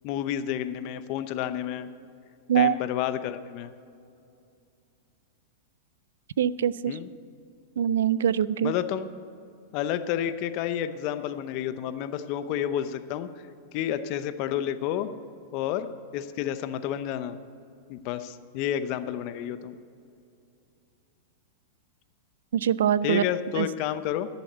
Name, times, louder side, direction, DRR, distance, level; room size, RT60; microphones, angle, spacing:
voice 1, 0.0-1.9 2.6-3.7 6.9-7.1 8.6-9.1 9.7-13.3 13.7-15.1 15.5-15.9 16.1-17.4 17.9-19.7 23.0-24.3, left 10 dB, 50° left, 11 dB, 0.7 m, -30 dB
voice 2, 6.4-7.0 7.8-8.7 22.5-23.2 23.6-23.7, right 9 dB, 85° right, 19 dB, 0.4 m, -23 dB
11.0 x 7.0 x 8.0 m, 2.5 s
hypercardioid pair, 130°, 0 cm